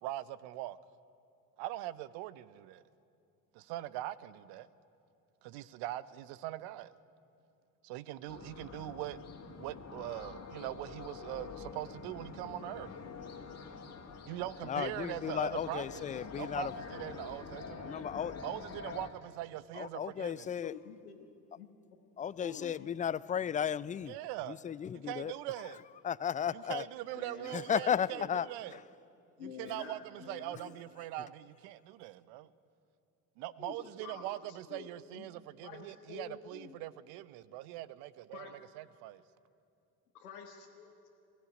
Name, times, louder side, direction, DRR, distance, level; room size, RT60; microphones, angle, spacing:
voice 1, 0.0-0.8 1.6-2.8 3.5-4.7 5.4-6.9 7.8-9.2 9.5-12.9 14.3-16.0 16.4-17.9 18.4-20.5 24.1-24.6 24.9-25.8 26.5-28.8 29.4-32.5 33.4-38.5 38.8-39.2, right 14 dB, 65° right, 17 dB, 0.9 m, -42 dB
sound 1, 8.3-19.1, left 5 dB, 35° left, 2.3 m, -46 dB
voice 2, 14.6-16.7 17.8-18.3 19.7-20.7 22.2-24.2 24.5-25.3 26.0-26.9 27.5-28.5 28.7-28.8, left 8 dB, 20° left, 20 dB, 0.4 m, -34 dB
voice 3, 20.4-21.3 21.5-21.7 22.4-22.9 27.1-27.6 27.9-28.3 29.4-30.7 33.6-35.3 35.6-36.8 38.3-38.5 40.1-41.1, left 7 dB, 85° left, -2 dB, 1.6 m, -49 dB
22.0 x 15.0 x 9.9 m, 2.6 s
hypercardioid pair, 65°, 44 cm